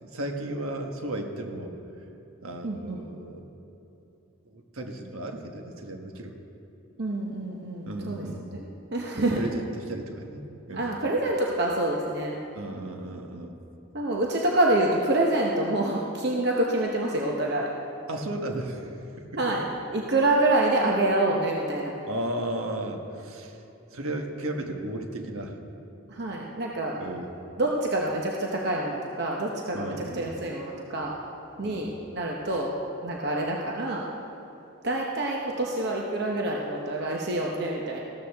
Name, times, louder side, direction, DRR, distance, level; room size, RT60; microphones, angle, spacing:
voice 1, 0.0-1.7 2.4-3.4 4.5-6.3 7.8-8.5 9.3-10.9 12.5-13.5 18.1-18.9 19.2-19.6 22.1-23.6 23.9-25.6 27.0-27.3 29.7-30.3 31.6-31.9 32.5-32.6, right 1 dB, 85° right, 3 dB, 1.3 m, -35 dB
voice 2, 2.6-3.1 7.0-9.4 10.7-12.4 13.9-17.7 19.4-19.6 19.9-21.9 26.1-27.0 27.6-31.1 31.6-32.7 33.0-34.0 34.8-38.0, right 2 dB, 50° right, -1 dB, 0.9 m, -27 dB
14.5 x 13.0 x 3.5 m, 2.9 s
head